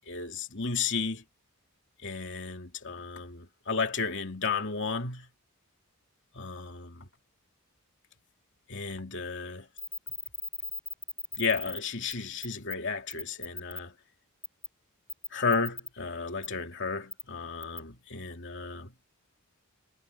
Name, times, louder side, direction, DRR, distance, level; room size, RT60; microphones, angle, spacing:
voice 1, 0.1-1.2 2.0-5.3 6.3-7.1 8.7-9.7 11.3-13.9 15.3-18.9, left 4 dB, 55° left, 2.8 m, -33 dB
sound 1, 9.8-11.8 12.1-12.2 12.4-12.8 13.1-13.8 14.4-14.7 15.1-15.9 16.4-16.5 17.1-17.2 17.6-17.8, left 1 dB, ahead, 4.9 m, -38 dB
head